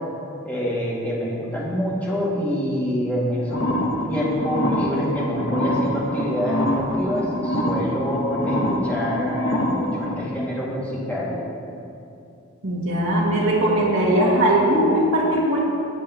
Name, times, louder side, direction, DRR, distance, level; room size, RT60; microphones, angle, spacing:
voice 1, 0.4-3.7 4.0-11.4, equal, 10° left, -7 dB, 2.4 m, -26 dB
sound 1, 3.5-10.1, equal, 60° left, 1.3 m, -25 dB
voice 2, 12.6-15.6, right 1 dB, 65° right, -4 dB, 2.2 m, -19 dB
20.5 x 7.0 x 3.1 m, 2.6 s
head